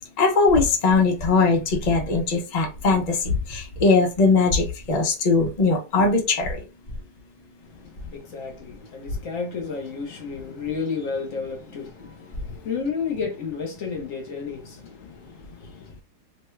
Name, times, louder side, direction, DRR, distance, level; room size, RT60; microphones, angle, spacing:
voice 1, 0.2-6.6, left 4 dB, 70° left, 0.4 m, -20 dB
voice 2, 7.6-15.9, left 5 dB, 55° left, 1.2 m, -32 dB
3.1 x 2.3 x 3.1 m
omnidirectional pair, 1.9 m